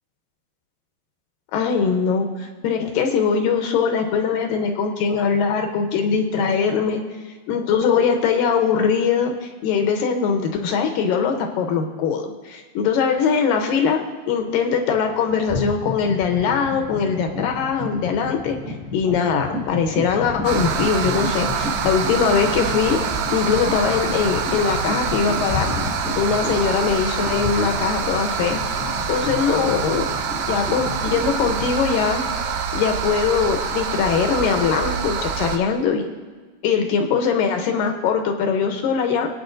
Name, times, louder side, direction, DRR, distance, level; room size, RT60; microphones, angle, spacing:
voice 1, 1.5-7.0 7.5-14.0 14.3-18.6 18.9-23.0 23.3-25.7 26.2-28.6 29.1-30.2 30.5-32.2 32.7-36.0 36.6-39.3, left 6 dB, 75° left, 4 dB, 2.4 m, -21 dB
sound 1, 14.7-15.0 15.3-31.7, left 3 dB, ahead, 0.4 m, -31 dB
sound 2, 20.4-35.6, right 6 dB, 80° right, 2.5 m, -26 dB
26.0 x 9.0 x 2.6 m, 1.4 s
omnidirectional pair, 4.2 m